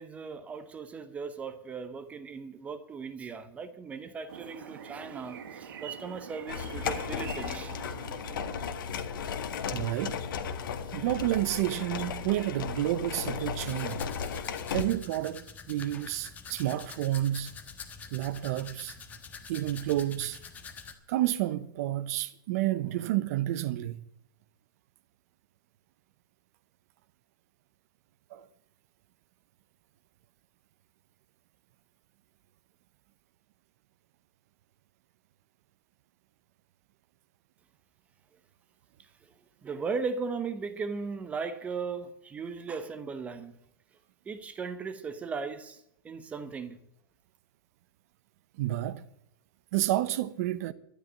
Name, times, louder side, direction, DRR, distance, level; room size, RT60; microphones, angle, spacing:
voice 1, 0.0-7.8 39.6-43.5 44.3-45.8 46.0-46.8, right 5 dB, 10° right, 0.8 m, -37 dB
sound 1, 4.3-9.1, right 8 dB, 70° right, 2.1 m, -45 dB
sound 2, 6.5-14.8, left 6 dB, 70° left, 1.9 m, -35 dB
voice 2, 9.7-10.2 10.9-14.0 14.7-17.5 18.1-18.9 19.5-20.4 21.1-24.0 28.3-28.5 48.6-49.0 49.7-50.7, right 14 dB, 45° right, 0.8 m, -30 dB
Domestic sounds home sounds, 13.7-20.9, left 5 dB, 15° left, 1.3 m, -46 dB
12.5 x 10.5 x 7.4 m
supercardioid pair, 165°, 12 cm